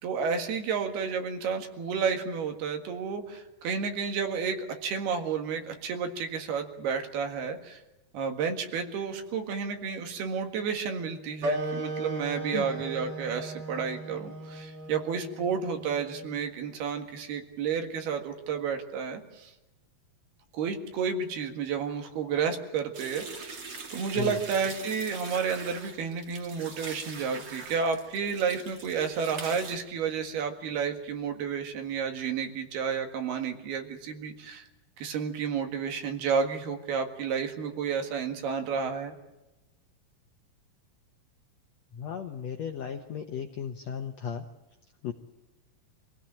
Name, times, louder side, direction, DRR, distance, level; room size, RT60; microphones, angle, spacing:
voice 1, 0.0-7.8 8.1-19.5 20.5-23.5 23.9-34.7 35.0-39.2, right 6 dB, 80° right, 6 dB, 3.8 m, -31 dB
sound 1, 11.4-16.5, right 2 dB, 55° right, 4.3 m, -36 dB
sound 2, 22.9-29.8, right 4 dB, 35° right, 2.0 m, -43 dB
voice 2, 41.9-44.4 45.0-45.1, left 8 dB, 75° left, 5 dB, 1.6 m, -35 dB
25.5 x 17.0 x 8.9 m, 1.0 s
omnidirectional pair, 4.5 m